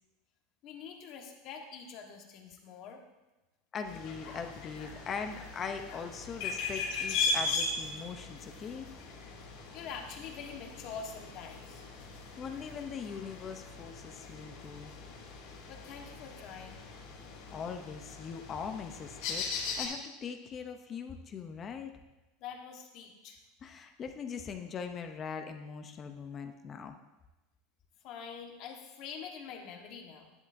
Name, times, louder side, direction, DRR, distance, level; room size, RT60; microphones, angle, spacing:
voice 1, 0.6-3.0 9.7-11.8 15.7-16.8 22.4-23.4 28.0-30.3, left 6 dB, 45° left, 3 dB, 1.3 m, -45 dB
voice 2, 3.7-8.9 12.4-14.9 17.5-19.5 19.8-21.9 23.6-27.0, left 6 dB, 25° left, 6 dB, 0.6 m, -41 dB
sound 1, 3.8-19.9, left 4 dB, 65° left, 2.9 m, -39 dB
10.5 x 9.9 x 2.6 m, 1.0 s
supercardioid pair, 150°, 0 cm